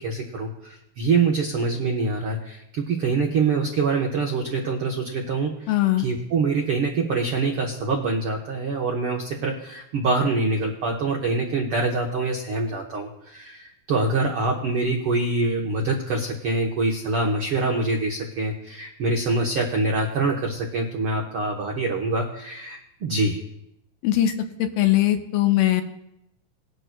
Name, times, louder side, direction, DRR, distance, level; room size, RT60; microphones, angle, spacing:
voice 1, 0.0-5.7 6.0-23.4, right 3 dB, 85° right, 1 dB, 1.2 m, -25 dB
voice 2, 5.7-6.1 24.0-24.3 24.6-25.8, left 14 dB, 80° left, 6 dB, 2.5 m, -20 dB
19.5 x 11.0 x 2.2 m, 0.81 s
omnidirectional pair, 4.1 m